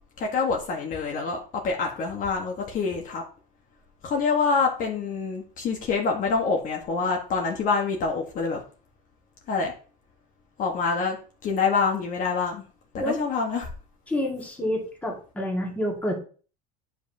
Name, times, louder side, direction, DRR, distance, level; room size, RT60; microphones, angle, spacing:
voice 1, 0.2-1.4 1.6-3.2 4.0-8.6 9.5-9.7 10.6-12.6 12.9-13.7, left 4 dB, 40° left, 1 dB, 1.3 m, -26 dB
voice 2, 14.1-16.2, left 1 dB, 5° left, -1 dB, 1.8 m, -28 dB
9.5 x 5.3 x 2.7 m, 0.39 s
supercardioid pair, 130°, 21 cm